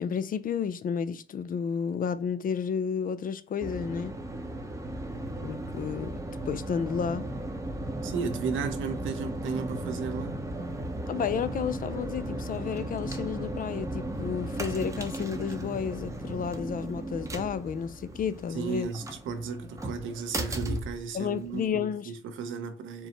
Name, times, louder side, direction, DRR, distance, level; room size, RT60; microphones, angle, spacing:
voice 1, 0.0-4.1 5.4-6.2 6.5-7.3 11.1-18.9 21.1-22.1, left 7 dB, 45° left, 0.4 m, -31 dB
sound 1, 3.6-21.7, right 1 dB, 15° right, 0.7 m, -36 dB
voice 2, 8.0-10.4 18.5-23.1, right 5 dB, 80° right, 0.7 m, -34 dB
4.5 x 2.0 x 4.0 m
cardioid pair, 90°, 20 cm